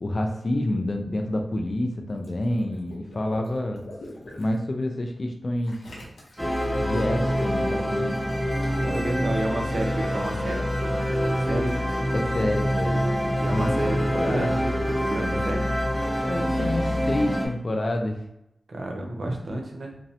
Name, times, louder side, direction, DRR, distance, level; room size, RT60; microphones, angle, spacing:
voice 1, 0.0-3.8 4.4-5.8 6.8-8.2 12.1-13.1 13.5-13.9 14.1-14.6 16.2-18.2, left 1 dB, 50° left, 3 dB, 0.3 m, -28 dB
Water / Liquid, 2.1-4.6 5.6-6.7 8.1-9.1, left 1 dB, 85° left, 0.6 m, -44 dB
sound 1, 6.4-17.5, equal, 10° right, 0.6 m, -26 dB
voice 2, 8.8-11.8 13.4-15.6 18.7-20.0, right 1 dB, 70° right, 1 dB, 0.5 m, -31 dB
2.5 x 2.0 x 2.6 m, 0.83 s
cardioid pair, 50°, 0 cm